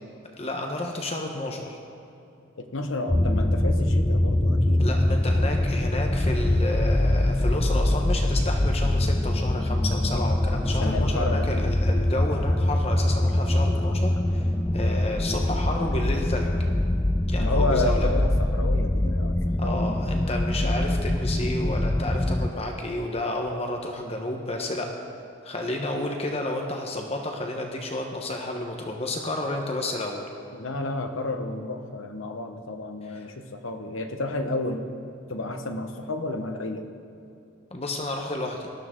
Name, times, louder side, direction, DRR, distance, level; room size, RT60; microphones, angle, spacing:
voice 1, 0.3-1.8 4.8-14.5 14.7-16.5 17.3-18.1 19.6-24.9 25.4-30.3 33.1-33.2 37.7-38.7, left 1 dB, 30° left, 2 dB, 1.0 m, -31 dB
voice 2, 2.6-5.0 10.8-11.7 17.4-20.0 30.5-34.9 35.3-36.9, left 2 dB, 75° left, 6 dB, 1.1 m, -31 dB
sound 1, 3.1-22.5, left 1 dB, 10° left, 0.3 m, -23 dB
18.5 x 12.5 x 3.7 m, 2.8 s
head